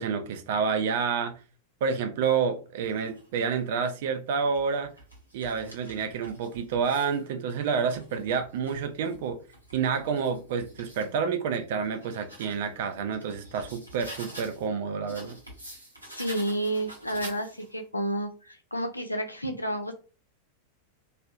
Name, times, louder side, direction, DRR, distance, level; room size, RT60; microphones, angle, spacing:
voice 1, 0.0-1.4 1.8-4.9 5.3-9.4 9.7-15.4, right 6 dB, 55° right, 0.4 m, -29 dB
sound 1, 2.8-3.6 4.3-7.2 7.7-11.1 11.6-14.7 15.1-17.8, right 1 dB, 90° right, 0.8 m, -47 dB
voice 2, 16.1-19.9, right 1 dB, 85° left, 0.4 m, -31 dB
2.7 x 2.0 x 2.3 m
figure-of-eight pair, 90°, 0 cm